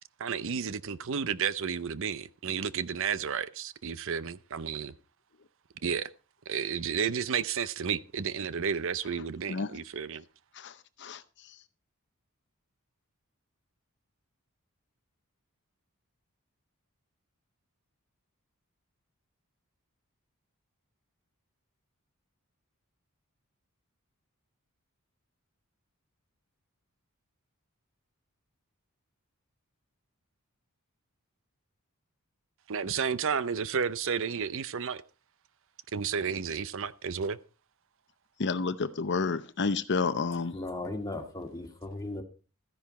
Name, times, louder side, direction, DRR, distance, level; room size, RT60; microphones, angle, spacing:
voice 1, 0.2-4.9 5.8-6.1 6.5-10.2 32.7-35.0 35.9-37.4, right 6 dB, 60° right, 0.6 m, -32 dB
voice 2, 10.5-11.6 38.4-40.6, left 4 dB, 55° left, 0.7 m, -30 dB
voice 3, 40.5-42.2, left 2 dB, 15° left, 2.1 m, -37 dB
14.0 x 10.5 x 4.2 m
head